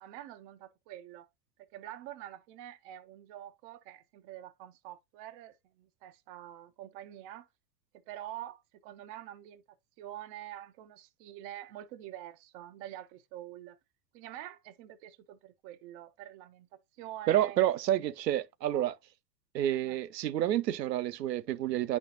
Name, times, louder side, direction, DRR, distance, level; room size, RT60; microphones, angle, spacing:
voice 1, 0.0-1.3 1.6-7.5 8.1-13.8 14.1-17.7 18.0-18.1 18.7-18.9 19.6-20.0, right 12 dB, 25° right, 0.4 m, -46 dB
voice 2, 17.3-18.9 19.5-22.0, right 12 dB, 75° right, 0.6 m, -29 dB
9.5 x 4.2 x 2.7 m
figure-of-eight pair, 90°, 50 cm